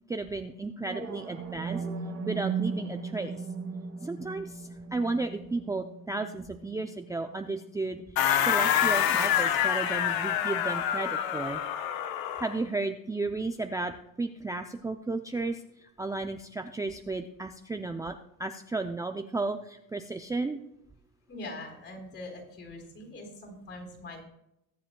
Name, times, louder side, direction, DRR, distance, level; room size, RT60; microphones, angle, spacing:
voice 1, 0.1-1.9 2.3-3.5 4.0-11.6 12.4-13.9 14.2-20.6, right 3 dB, 10° right, 6 dB, 0.4 m, -33 dB
sound 1, 0.8-8.8, right 5 dB, 50° right, 2.4 m, -38 dB
sound 2, 8.2-12.6, left 10 dB, 90° left, 1.0 m, -26 dB
voice 2, 21.3-24.2, left 2 dB, 45° left, 2 dB, 4.0 m, -43 dB
21.0 x 7.7 x 2.3 m, 0.80 s
cardioid pair, 130°, 34 cm